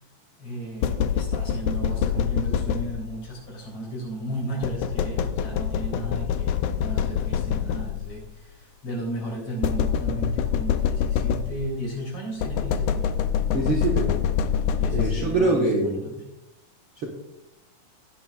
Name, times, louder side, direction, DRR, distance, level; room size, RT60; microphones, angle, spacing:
voice 1, 0.4-13.1 13.4-14.1 14.8-16.1, right 1 dB, 40° left, -2 dB, 4.2 m, -35 dB
sound 1, 0.8-3.3 4.6-8.2 9.6-11.8 12.4-15.5, left 8 dB, 80° left, 1.9 m, -25 dB
voice 2, 13.5-14.1 14.9-16.0, right 2 dB, 50° right, -2 dB, 1.6 m, -23 dB
16.5 x 9.9 x 2.4 m, 0.89 s
omnidirectional pair, 4.0 m